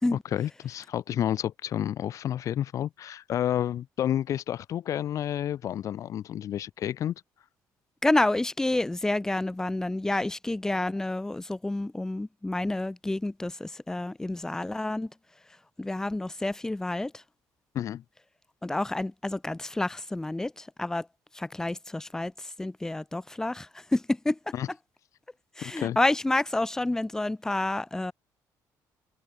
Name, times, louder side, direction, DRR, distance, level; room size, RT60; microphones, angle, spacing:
voice 1, 0.1-7.1 17.7-18.0 24.5-24.7 25.6-26.0, left 11 dB, 50° left, 1.9 m, -30 dB
voice 2, 8.0-15.1 15.8-17.2 18.6-21.1 21.3-24.4 25.6-28.1, left 2 dB, 10° left, 2.2 m, -29 dB
cardioid pair, 165°, 7 cm